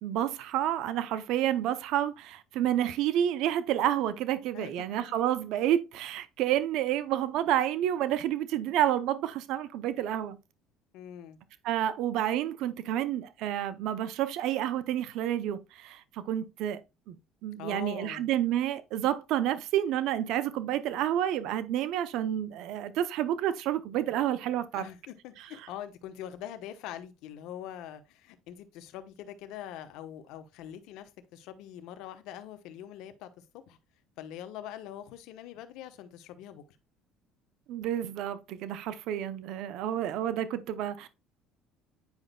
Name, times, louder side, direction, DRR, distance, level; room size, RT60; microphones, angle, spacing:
voice 1, 0.0-10.4 11.6-16.8 17.1-17.2 17.4-24.9 37.7-41.1, right 11 dB, 70° right, 0.5 m, -29 dB
voice 2, 10.9-11.4 17.6-18.3 24.7-33.8 34.2-36.6 39.9-40.2, left 11 dB, 75° left, 0.9 m, -43 dB
9.5 x 5.0 x 2.2 m
supercardioid pair, 100°, 0 cm